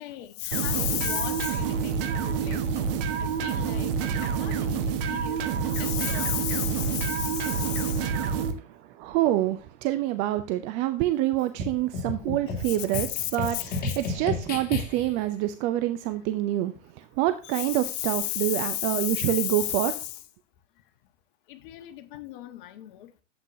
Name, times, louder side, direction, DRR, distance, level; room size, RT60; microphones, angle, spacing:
voice 1, 0.0-2.2 2.4-2.8 3.4-3.9 4.2-8.0 12.6-13.8 17.4-20.1 21.5-23.0, left 15 dB, 45° left, 1.2 m, -33 dB
sound 1, 0.5-8.5, right 6 dB, 45° right, 1.4 m, -28 dB
voice 2, 9.0-16.7 17.2-19.9, right 14 dB, 20° right, 0.4 m, -26 dB
sound 2, 11.6-15.2, left 3 dB, 25° left, 2.9 m, -33 dB
11.5 x 8.0 x 2.7 m
figure-of-eight pair, 100°, 37 cm